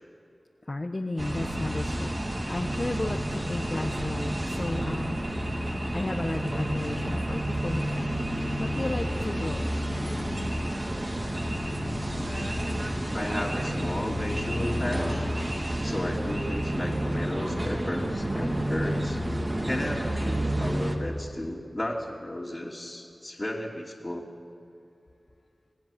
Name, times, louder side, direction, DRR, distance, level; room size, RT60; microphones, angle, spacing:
voice 1, 0.7-5.2 5.9-8.1 8.6-9.6, left 2 dB, 45° left, 3 dB, 1.2 m, -33 dB
sound 1, 1.2-20.9, right 1 dB, 40° right, 3.0 m, -30 dB
voice 2, 13.1-15.3 15.7-19.2 19.6-24.2, left 1 dB, 30° left, -6 dB, 2.9 m, -34 dB
28.5 x 18.5 x 7.5 m, 2.6 s
wide cardioid pair, 55°, 0 cm